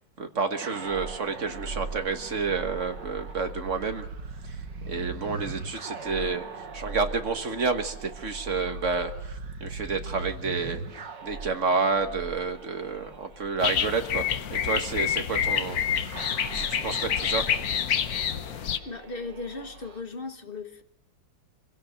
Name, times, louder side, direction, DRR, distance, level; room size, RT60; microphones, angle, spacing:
voice 1, 0.2-4.1 4.4-4.5 4.8-6.5 6.7-10.8 11.2-16.1 16.5-17.5, right 4 dB, 40° right, 6 dB, 1.5 m, -30 dB
sound 1, 0.6-20.0, right 4 dB, 55° right, 2.1 m, -40 dB
sound 2, 13.6-18.8, left 9 dB, 55° left, 1.1 m, -27 dB
voice 2, 18.8-20.8, left 3 dB, 30° left, 7 dB, 1.2 m, -37 dB
25.0 x 17.0 x 6.5 m, 0.84 s
omnidirectional pair, 2.3 m